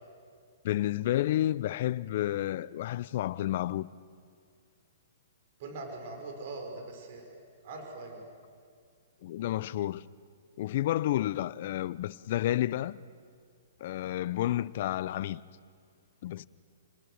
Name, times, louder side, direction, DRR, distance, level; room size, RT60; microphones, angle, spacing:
voice 1, 0.6-3.9 9.2-10.0 10.6-13.0 13.8-15.4 16.2-16.5, left 13 dB, 55° left, 0.6 m, -30 dB
voice 2, 5.6-7.3 7.6-8.2, right 3 dB, 55° right, 5.5 m, -41 dB
29.5 x 20.0 x 6.6 m
hypercardioid pair, 125°, 0 cm